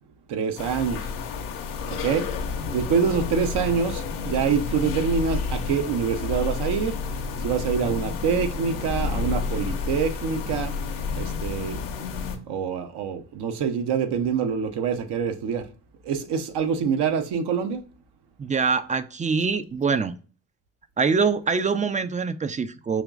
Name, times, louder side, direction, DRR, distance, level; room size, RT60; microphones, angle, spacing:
voice 1, 0.3-1.1 1.9-2.3 2.7-7.0 7.4-10.7 11.2-11.9 12.5-15.7 16.0-17.8, right 6 dB, 70° right, 0.7 m, -25 dB
sound 1, 0.6-12.4, left 5 dB, 85° left, 0.7 m, -30 dB
voice 2, 18.4-20.1 21.0-23.0, right 5 dB, 20° right, 0.3 m, -24 dB
5.0 x 3.0 x 2.3 m
hypercardioid pair, 45°, 42 cm